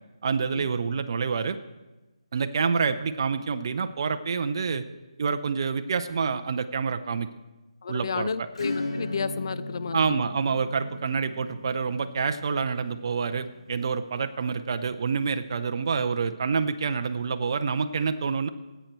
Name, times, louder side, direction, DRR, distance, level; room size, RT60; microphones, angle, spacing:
voice 1, 0.2-1.6 2.3-4.8 5.2-7.3 7.9-8.3 9.9-18.5, right 5 dB, 45° right, 8 dB, 0.6 m, -27 dB
voice 2, 7.8-10.0, left 5 dB, 45° left, 14 dB, 0.6 m, -31 dB
Acoustic guitar / Strum, 8.5-14.8, left 2 dB, 75° left, 3.9 m, -37 dB
16.5 x 8.1 x 4.5 m, 1.1 s
figure-of-eight pair, 165°, 3 cm